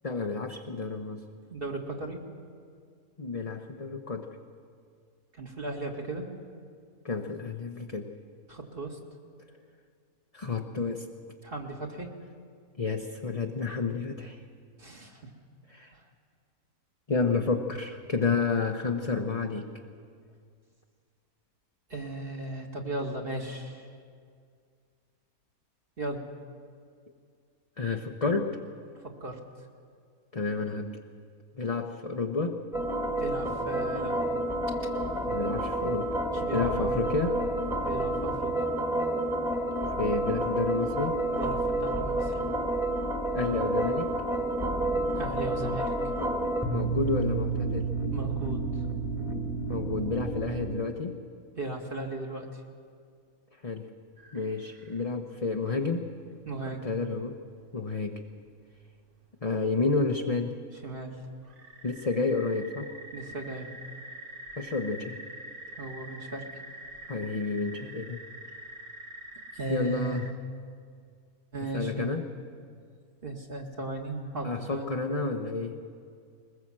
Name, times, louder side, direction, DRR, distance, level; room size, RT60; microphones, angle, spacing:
voice 1, 0.0-1.2 3.2-4.4 7.0-8.1 10.3-11.1 12.8-14.4 15.7-15.9 17.1-19.7 27.8-28.6 30.3-31.0 31.6-32.7 35.3-36.1 36.5-37.4 39.9-41.2 43.3-44.1 46.7-47.9 49.7-51.2 53.6-53.9 54.3-56.1 56.8-57.4 57.7-58.2 59.4-60.6 61.8-62.9 64.6-65.2 67.1-68.2 69.7-70.3 71.7-72.2 74.4-75.8, left 4 dB, 30° left, 3 dB, 0.9 m, -30 dB
voice 2, 1.5-2.2 5.4-6.3 8.5-9.0 11.4-12.1 14.8-15.2 15.9-16.0 21.9-23.9 26.0-26.2 29.0-29.4 33.2-34.2 36.3-37.0 37.8-38.5 41.3-42.4 45.2-45.9 48.1-48.6 51.6-52.6 56.5-56.8 60.8-61.2 63.1-63.7 65.8-66.5 69.5-70.2 71.5-72.1 73.2-74.9, right 2 dB, 40° right, 1 dB, 2.3 m, -36 dB
sound 1, 32.7-50.7, right 2 dB, ahead, 1.6 m, -30 dB
sound 2, 54.2-55.0 55.4-55.5 56.5-56.6 57.6-57.7 58.3-58.4 58.6-58.7 60.0-60.2 60.6-60.7 61.1-70.3, right 1 dB, 55° right, 1.6 m, -45 dB
21.5 x 21.0 x 7.5 m, 2.2 s
omnidirectional pair, 1.6 m